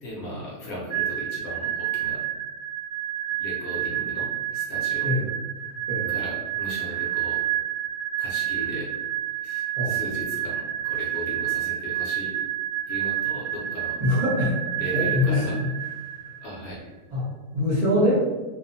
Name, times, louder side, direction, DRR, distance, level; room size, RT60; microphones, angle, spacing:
voice 1, 0.0-2.2 3.4-5.1 6.1-7.4 8.2-8.9 9.4-12.3 12.9-14.0 14.8-15.6 16.4-16.9, left 1 dB, 65° left, -4 dB, 1.0 m, -37 dB
sound 1, 0.9-16.5, right 12 dB, 65° right, 0.8 m, -29 dB
voice 2, 14.0-14.6 14.9-15.4 17.1-17.3 17.5-18.3, left 1 dB, 40° right, -11 dB, 0.5 m, -23 dB
2.9 x 2.1 x 2.6 m, 1.3 s
omnidirectional pair, 1.8 m